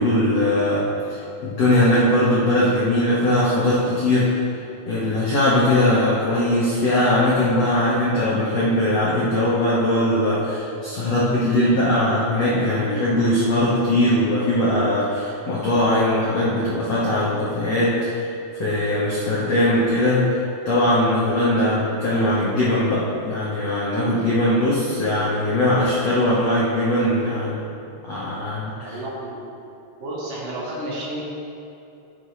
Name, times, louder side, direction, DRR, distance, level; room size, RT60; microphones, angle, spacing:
voice 1, 0.0-4.4 4.9-18.3 18.6-20.4 20.6-27.7 28.0-29.0, left 1 dB, 65° left, -8 dB, 1.6 m, -20 dB
voice 2, 28.8-29.4 30.0-31.2, right 1 dB, 55° right, -7 dB, 3.2 m, -31 dB
15.5 x 7.2 x 3.3 m, 2.7 s
omnidirectional pair, 5.1 m